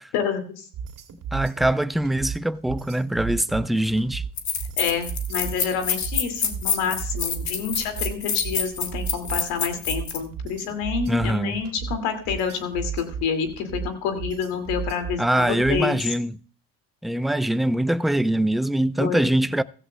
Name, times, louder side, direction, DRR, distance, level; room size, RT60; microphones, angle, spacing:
voice 1, 0.1-0.7 4.8-16.0 19.0-19.3, left 6 dB, 85° left, 2.3 m, -28 dB
sound 1, 0.7-16.0, right 7 dB, 60° right, 2.5 m, -34 dB
voice 2, 1.3-4.2 11.1-11.6 15.2-16.4 17.0-19.6, right 1 dB, ahead, 0.5 m, -23 dB
sound 2, 3.8-3.9 4.4-10.2, left 6 dB, 50° left, 2.0 m, -27 dB
16.0 x 14.0 x 2.2 m
supercardioid pair, 65°, 37 cm